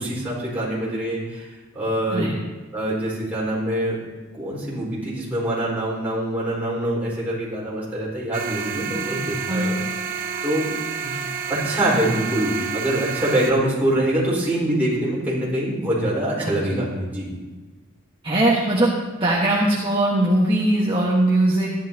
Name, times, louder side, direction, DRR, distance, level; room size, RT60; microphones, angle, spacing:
voice 1, 0.0-2.3 2.7-4.0 4.3-9.8 10.4-10.7 11.0-11.2 11.5-17.3, right 1 dB, 10° right, -8 dB, 4.3 m, -24 dB
sound 1, 8.3-13.5, right 7 dB, 40° right, 0.8 m, -29 dB
voice 2, 9.5-9.8 16.4-16.9 18.2-18.9 19.2-21.7, right 1 dB, 25° right, -5 dB, 1.4 m, -20 dB
14.5 x 11.0 x 2.8 m, 1.3 s
head